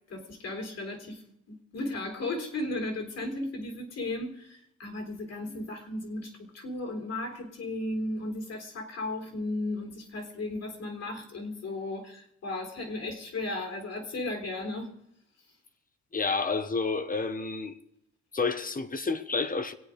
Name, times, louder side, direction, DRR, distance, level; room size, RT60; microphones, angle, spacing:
voice 1, 0.1-14.9, left 2 dB, 60° left, 3.9 m, -35 dB
voice 2, 16.1-17.8 18.3-19.7, left 4 dB, 30° left, 1.2 m, -30 dB
25.0 x 8.9 x 5.0 m
cardioid pair, 90°, 30 cm